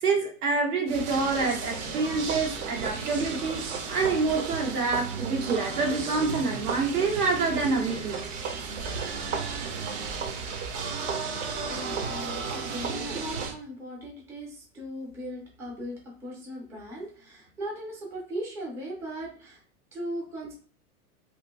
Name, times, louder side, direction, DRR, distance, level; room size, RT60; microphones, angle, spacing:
voice 1, 0.0-8.2, right 4 dB, 85° right, 1 dB, 1.2 m, -27 dB
sound 1, 0.9-13.5, right 5 dB, 55° right, 0.7 m, -33 dB
voice 2, 11.6-19.6 19.9-20.5, equal, 5° right, -2 dB, 0.4 m, -38 dB
2.9 x 2.6 x 3.4 m, 0.43 s
hypercardioid pair, 135°, 44 cm